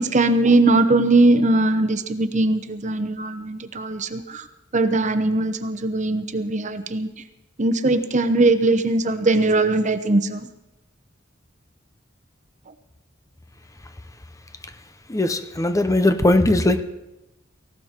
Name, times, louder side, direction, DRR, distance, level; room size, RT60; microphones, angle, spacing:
voice 1, 0.0-4.4 4.7-7.1 7.6-10.5, right 2 dB, 40° right, 10 dB, 0.9 m, -20 dB
voice 2, 15.1-16.8, left 1 dB, 15° left, 10 dB, 0.8 m, -19 dB
18.0 x 16.0 x 4.5 m, 0.96 s
head